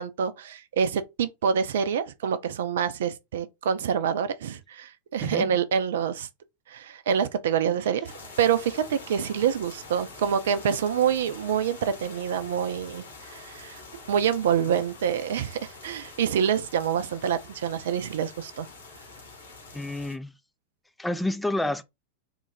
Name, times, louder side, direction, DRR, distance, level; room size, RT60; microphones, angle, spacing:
voice 1, 0.0-6.3 6.7-8.1 8.4-13.8 14.1-18.7, right 8 dB, 60° right, 0.5 m, -26 dB
voice 2, 5.2-5.5 19.7-20.3 21.0-21.8, left 1 dB, 5° left, 0.5 m, -29 dB
sound 1, 8.0-20.2, left 3 dB, 70° left, 1.3 m, -45 dB
3.8 x 2.4 x 4.0 m
figure-of-eight pair, 90°, 0 cm